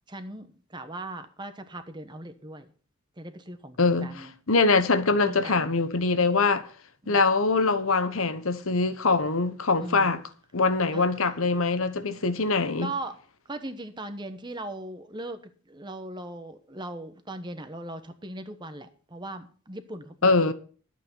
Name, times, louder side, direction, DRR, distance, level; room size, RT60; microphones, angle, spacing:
voice 1, 0.1-2.7 3.2-4.3 5.2-5.7 7.0-7.2 9.8-10.2 10.9-11.1 12.2-12.3 12.8-13.2 13.5-20.5, right 1 dB, 20° right, 1.0 m, -39 dB
voice 2, 3.8-6.7 7.1-10.2 10.5-12.9 20.2-20.5, left 3 dB, 65° left, 1.0 m, -23 dB
12.5 x 8.4 x 5.4 m
head